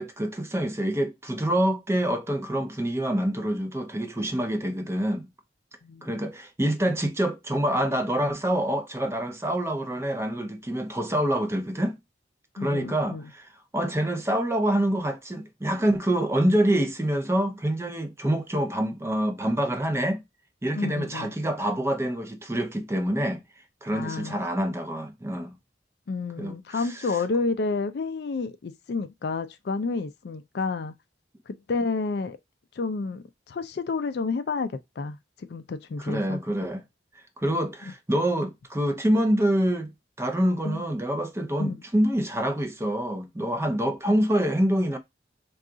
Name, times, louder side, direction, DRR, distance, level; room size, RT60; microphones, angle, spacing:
voice 1, 0.0-5.3 6.0-12.0 12.5-20.2 20.6-23.4 23.8-25.5 26.4-27.0 36.0-36.8 37.4-39.9 40.2-45.0, right 1 dB, 15° right, 0.5 m, -26 dB
voice 2, 12.6-13.2 20.7-21.3 23.9-24.4 26.1-30.9 31.5-32.4 32.8-36.4 40.6-40.8 41.6-41.8, left 4 dB, 60° left, 0.4 m, -30 dB
3.6 x 2.4 x 3.8 m
head